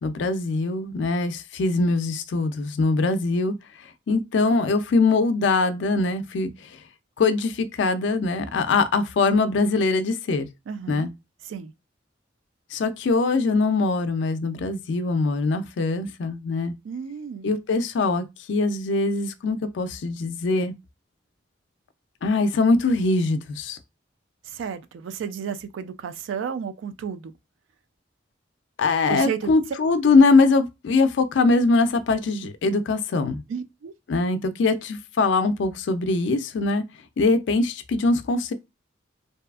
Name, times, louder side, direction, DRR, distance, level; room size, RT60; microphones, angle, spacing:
voice 1, 0.0-3.5 4.1-6.5 7.2-10.5 10.9-11.1 12.7-16.7 17.4-20.7 22.2-23.8 28.8-33.4 34.1-36.8 37.2-38.5, left 3 dB, 65° left, 0.4 m, -22 dB
voice 2, 10.7-11.1 11.4-11.7 16.8-17.5 24.4-27.3 29.1-29.5 33.5-33.9, right 7 dB, 80° right, 0.3 m, -32 dB
2.6 x 2.3 x 2.3 m
head